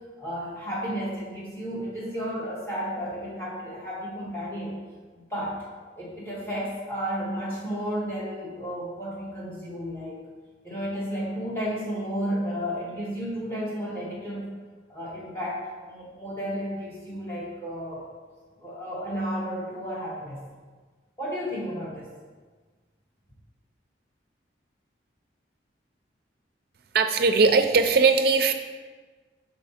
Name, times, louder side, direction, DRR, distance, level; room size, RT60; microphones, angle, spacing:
voice 1, 0.0-4.7 5.1-5.6 6.0-10.2 10.6-14.5 14.9-18.1 18.6-20.5 21.2-22.1, equal, 15° left, -6 dB, 1.6 m, -32 dB
voice 2, 26.9-28.5, right 4 dB, 55° right, 7 dB, 0.4 m, -19 dB
5.8 x 3.9 x 4.2 m, 1.4 s
head